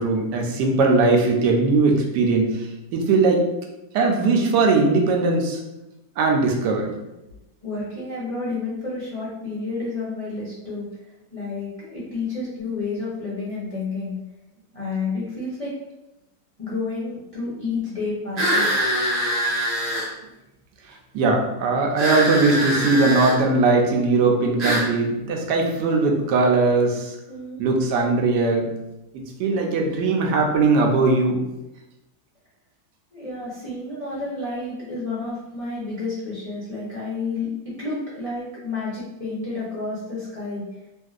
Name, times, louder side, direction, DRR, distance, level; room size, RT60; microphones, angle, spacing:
voice 1, 0.0-2.7 2.9-3.5 3.9-5.6 6.2-6.9 21.1-27.2 27.6-28.7 29.1-31.4, right 3 dB, 85° right, 1 dB, 1.2 m, -20 dB
voice 2, 7.6-10.9 11.3-14.2 14.7-15.7 16.6-18.7 27.3-27.6 33.1-40.6, left 3 dB, 55° left, -9 dB, 0.4 m, -30 dB
sound 1, 18.4-20.1 22.0-23.4 24.6-24.9, equal, 45° right, 0.8 m, -23 dB
2.9 x 2.6 x 2.3 m, 0.96 s
omnidirectional pair, 1.8 m